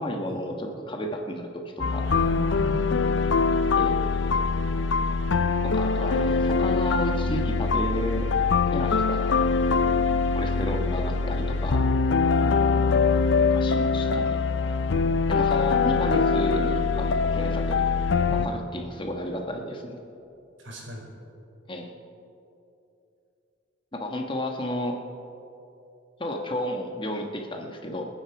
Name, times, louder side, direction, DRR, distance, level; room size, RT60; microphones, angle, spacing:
voice 1, 0.0-2.1 3.8-3.9 5.6-8.3 8.7-9.4 10.3-11.9 13.5-14.4 15.3-17.8 18.3-20.0 21.7-21.9 23.9-25.0 26.2-28.1, left 1 dB, 25° left, 3 dB, 1.3 m, -32 dB
sound 1, 1.8-18.5, left 4 dB, 80° left, 0.6 m, -23 dB
voice 2, 2.0-2.9 10.5-10.6 12.2-12.7 18.3-18.4 20.6-21.0, right 1 dB, 90° right, -1 dB, 4.4 m, -37 dB
27.5 x 9.4 x 4.8 m, 2.8 s
head